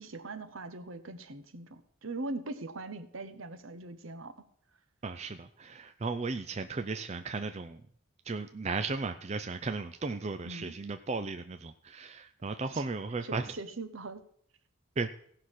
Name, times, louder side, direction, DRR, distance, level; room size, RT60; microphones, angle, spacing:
voice 1, 0.0-4.4 10.4-10.7 12.7-12.9 13.3-14.2, right 2 dB, 70° right, 10 dB, 1.0 m, -41 dB
voice 2, 5.0-7.8 8.2-13.5 15.0-15.1, right 4 dB, 30° right, 8 dB, 0.4 m, -35 dB
16.0 x 5.8 x 6.4 m, 0.64 s
head